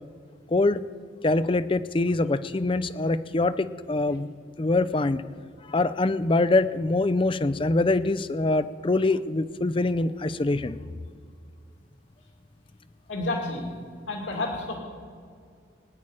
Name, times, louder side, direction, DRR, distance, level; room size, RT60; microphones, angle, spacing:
voice 1, 0.5-0.8 1.2-4.3 4.6-5.2 5.7-10.8, left 2 dB, 25° left, 14 dB, 0.5 m, -24 dB
voice 2, 13.1-13.6 14.1-14.8, left 2 dB, 85° left, 0 dB, 2.5 m, -30 dB
24.0 x 10.0 x 5.0 m, 2.2 s
head